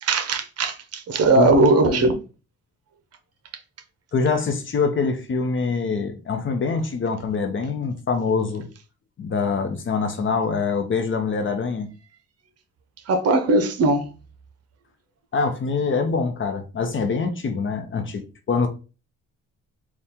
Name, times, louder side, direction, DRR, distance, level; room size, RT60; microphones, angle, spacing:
voice 1, 0.0-2.2 13.1-14.1, right 2 dB, 55° right, 0.8 m, -19 dB
voice 2, 1.4-2.1 4.1-8.7 9.2-11.9 15.3-18.7, left 4 dB, 40° left, 0.8 m, -24 dB
4.2 x 2.4 x 3.6 m
cardioid pair, 90°, 30 cm